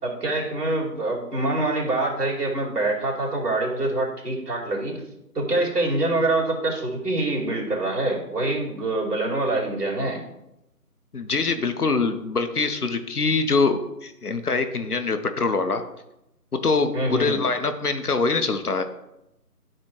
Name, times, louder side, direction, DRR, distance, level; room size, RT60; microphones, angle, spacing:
voice 1, 0.0-5.0 5.3-10.2 16.9-17.4, right 2 dB, 70° right, -3 dB, 2.8 m, -25 dB
voice 2, 11.1-15.8 16.5-18.8, left 4 dB, 70° left, 8 dB, 0.9 m, -24 dB
12.0 x 4.4 x 3.1 m, 0.88 s
figure-of-eight pair, 180°, 47 cm